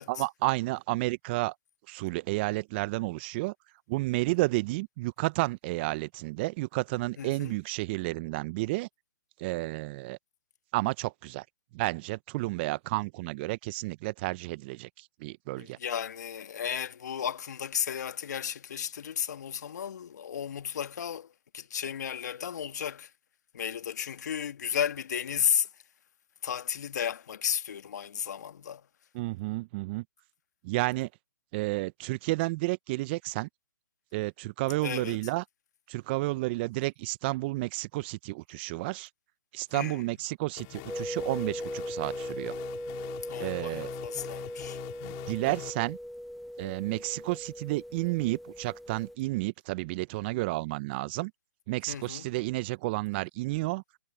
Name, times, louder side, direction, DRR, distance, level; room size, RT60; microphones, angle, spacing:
voice 1, 0.1-1.5 1.9-3.5 3.9-8.9 9.4-10.2 10.7-11.4 11.7-15.8 29.1-30.0 30.6-31.1 31.5-33.5 34.1-35.4 35.9-39.1 39.5-42.5 43.4-43.9 45.0-46.0 46.6-51.3 51.7-53.8, right 22 dB, 30° right, 0.8 m, -31 dB
voice 2, 7.2-7.6 15.6-23.1 23.5-25.7 26.4-28.8 34.8-35.2 39.7-40.0 43.2-44.8 51.9-52.2, left 8 dB, 60° left, 1.9 m, -33 dB
sound 1, 40.6-45.7, left 34 dB, 30° left, 5.7 m, -44 dB
sound 2, 40.9-49.1, equal, ahead, 0.8 m, -39 dB
hypercardioid pair, 135°, 11 cm